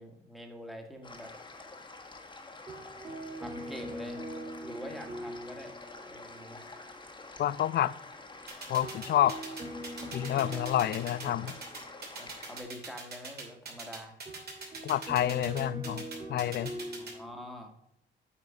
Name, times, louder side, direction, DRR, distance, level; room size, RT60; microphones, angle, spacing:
voice 1, 0.0-1.3 3.4-4.2 4.6-5.8 6.1-6.7 10.5-10.6 12.2-14.2 16.9-17.7, equal, ahead, 2 dB, 1.6 m, -45 dB
sound 1, 1.0-12.6, left 3 dB, 25° left, 1.4 m, -48 dB
sound 2, 2.7-6.2 6.5-6.6 8.8-12.1 14.3-17.5, right 1 dB, 30° right, 2.5 m, -42 dB
voice 2, 7.4-7.9 8.7-9.4 10.1-11.6 14.8-16.0 16.3-16.7, left 12 dB, 55° left, 18 dB, 0.4 m, -28 dB
sound 3, 8.5-17.1, right 4 dB, 55° right, 2.6 m, -42 dB
8.4 x 4.4 x 4.9 m, 0.75 s
cardioid pair, 90°, 20 cm